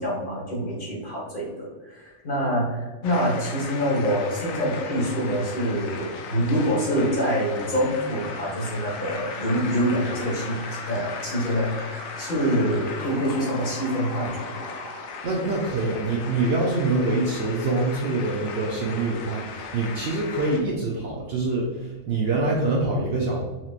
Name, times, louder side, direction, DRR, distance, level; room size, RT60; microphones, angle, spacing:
voice 1, 0.0-14.6, equal, 40° left, -6 dB, 1.4 m, -26 dB
sound 1, 3.0-20.6, left 5 dB, 90° left, 1.0 m, -38 dB
Alarm, 7.9-15.8, left 1 dB, 65° left, 1.9 m, -41 dB
voice 2, 15.2-23.4, right 2 dB, 60° right, -2 dB, 0.7 m, -25 dB
4.3 x 2.9 x 2.4 m, 1.3 s
omnidirectional pair, 1.4 m